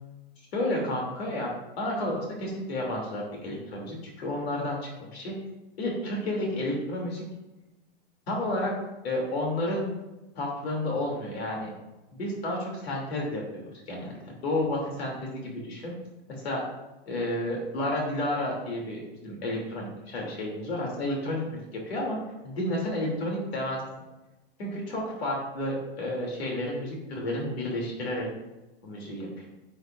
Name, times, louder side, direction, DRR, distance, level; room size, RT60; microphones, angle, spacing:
voice 1, 0.5-1.5 1.8-5.4 5.8-7.2 8.3-8.7 9.0-9.9 10.3-11.7 12.1-14.1 14.4-15.9 16.3-16.6 17.1-22.2 22.4-23.8 24.6-28.3 28.8-29.5, left 1 dB, 75° left, -2 dB, 3.0 m, -31 dB
10.5 x 7.8 x 2.6 m, 1.0 s
supercardioid pair, 165°, 31 cm